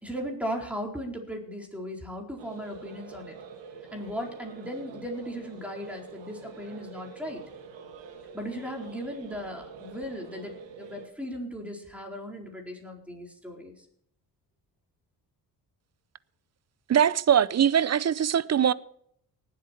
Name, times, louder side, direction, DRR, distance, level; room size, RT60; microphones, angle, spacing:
voice 1, 0.0-3.3 3.9-7.4 8.3-13.7, equal, 5° right, 4.3 m, -37 dB
sound 1, 2.4-11.1, right 5 dB, 85° right, 2.0 m, -46 dB
voice 2, 16.9-18.7, right 9 dB, 40° right, 0.5 m, -22 dB
19.0 x 8.1 x 4.5 m
cardioid pair, 85°, 43 cm